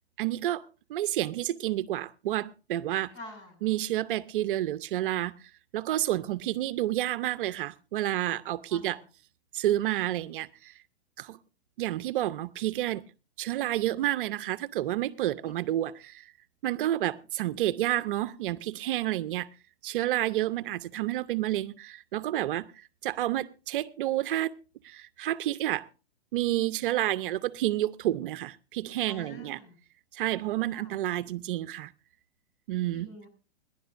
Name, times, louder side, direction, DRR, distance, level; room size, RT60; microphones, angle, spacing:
voice 1, 0.2-0.6 0.9-3.1 3.6-5.3 5.7-9.0 9.5-10.7 11.2-11.4 11.8-13.0 13.4-16.3 16.6-19.5 19.8-24.5 24.8-25.9 26.3-29.6 30.1-31.9 32.7-33.1, right 14 dB, 55° right, 0.7 m, -30 dB
voice 2, 3.1-3.6 8.7-9.0 15.4-15.6 29.0-29.8 30.7-30.9 32.9-33.3, left 1 dB, 40° left, 6.1 m, -47 dB
28.5 x 11.0 x 2.5 m
hypercardioid pair, 130°, 31 cm